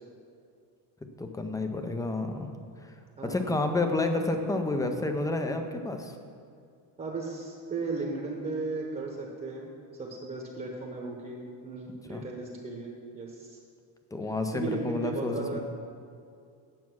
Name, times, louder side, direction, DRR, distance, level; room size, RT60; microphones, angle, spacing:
voice 1, 1.2-2.5 2.8-2.9 3.2-6.1 12.1-12.2 14.1-15.6, left 2 dB, 10° left, 6 dB, 0.5 m, -30 dB
voice 2, 3.2-3.5 7.0-9.7 10.0-12.9 13.1-13.6 14.5-15.6, right 3 dB, 20° right, -1 dB, 1.0 m, -36 dB
9.4 x 7.3 x 6.1 m, 2.3 s
cardioid pair, 175°, 43 cm